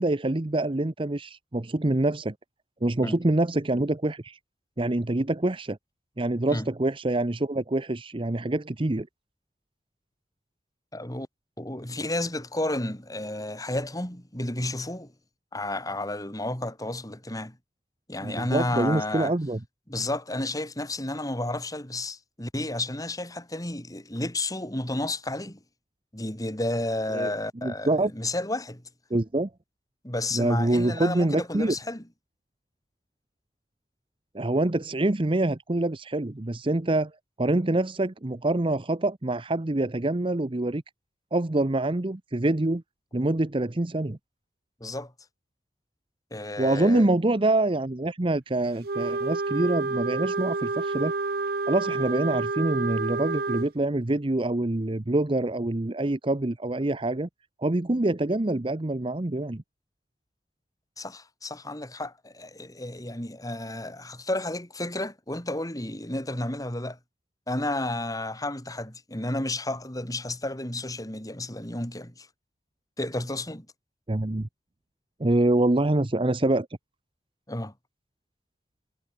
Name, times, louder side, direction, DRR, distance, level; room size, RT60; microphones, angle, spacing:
voice 1, 0.0-2.3 2.8-4.4 4.8-5.8 6.2-9.1 18.2-19.6 27.1-27.3 27.6-28.1 29.1-29.5 30.3-31.7 34.3-37.1 37.4-40.8 41.3-42.8 43.1-44.2 46.6-51.1 51.7-57.3 57.6-59.6 74.1-74.5 75.2-76.7, right 2 dB, 30° right, 0.8 m, -25 dB
voice 2, 10.9-11.3 11.6-15.1 15.5-17.6 18.1-19.3 19.9-25.6 26.1-28.8 30.0-32.0 44.8-45.1 46.3-47.1 61.0-67.0 67.5-72.3 73.0-73.7 77.5-77.7, left 1 dB, 20° left, 4.3 m, -32 dB
Wind instrument woodwind instrument, 48.8-53.7, right 3 dB, 60° right, 0.9 m, -29 dB
head